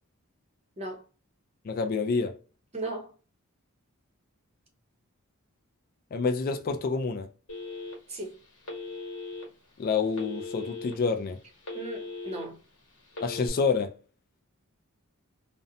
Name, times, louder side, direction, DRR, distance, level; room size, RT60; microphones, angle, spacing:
voice 1, 1.6-2.4 6.1-7.3 9.8-11.4 13.2-13.9, left 4 dB, 40° left, 0.3 m, -28 dB
voice 2, 2.7-3.1 8.1-8.4 11.7-12.6, right 2 dB, 30° right, 0.7 m, -36 dB
Telephone, 7.5-8.2 8.6-9.4 10.1-10.9 11.4-12.4 13.1-13.5, left 3 dB, 70° left, 1.1 m, -38 dB
2.5 x 2.1 x 2.6 m
head